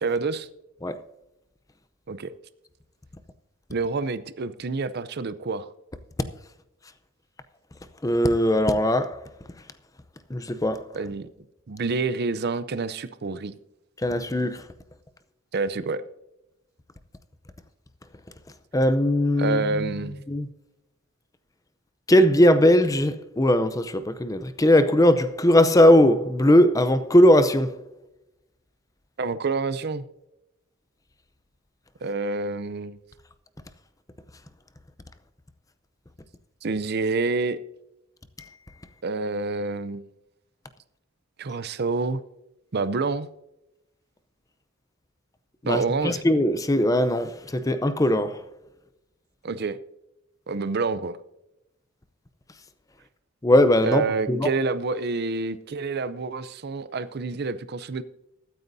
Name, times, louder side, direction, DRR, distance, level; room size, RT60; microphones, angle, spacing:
voice 1, 0.0-0.5 2.1-2.3 3.7-5.7 10.9-11.3 11.7-13.5 15.5-16.0 19.4-20.2 29.2-30.0 32.0-33.0 36.6-37.6 39.0-40.0 41.4-42.2 42.7-43.3 45.6-46.2 49.4-49.8 50.5-51.2 53.8-58.0, right 4 dB, 50° right, 0.5 m, -27 dB
voice 2, 8.0-9.2 10.3-10.9 14.0-14.6 18.7-19.8 20.3-20.5 22.1-27.7 45.6-48.4 53.4-54.0 54.3-54.5, left 1 dB, 15° left, 0.6 m, -19 dB
22.0 x 9.2 x 2.7 m
head